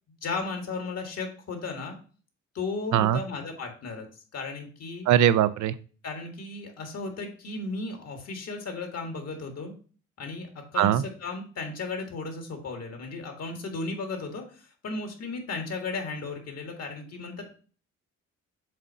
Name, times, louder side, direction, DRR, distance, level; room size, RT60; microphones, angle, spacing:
voice 1, 0.2-2.0 2.5-4.1 4.3-5.1 6.0-9.8 10.2-17.5, left 3 dB, 55° left, 4 dB, 1.9 m, -35 dB
voice 2, 5.1-5.7 10.8-11.0, right 11 dB, 75° right, 14 dB, 0.6 m, -21 dB
7.4 x 2.6 x 5.4 m, 0.40 s
cardioid pair, 90°, 30 cm